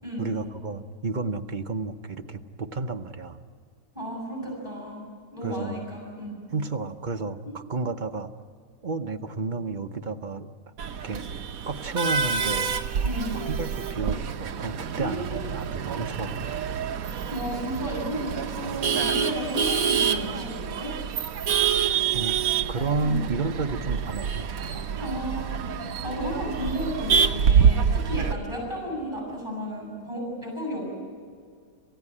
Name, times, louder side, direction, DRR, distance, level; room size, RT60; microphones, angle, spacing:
voice 1, 0.2-3.4 5.4-5.8 6.5-8.3 8.8-10.5 11.0-11.3 11.7-12.8 13.3-16.6 22.1-22.4 22.7-24.9, right 3 dB, 45° right, 6 dB, 0.6 m, -31 dB
voice 2, 3.9-6.4 13.0-13.5 15.0-15.5 17.3-20.9 23.0-23.2 25.0-25.6 26.0-30.9, equal, 15° right, -2 dB, 7.0 m, -33 dB
Male speech man speaking / Laughter / Chatter, 10.8-28.3, right 7 dB, 60° right, 1.2 m, -27 dB
27.5 x 15.5 x 9.8 m, 2.2 s
omnidirectional pair, 1.9 m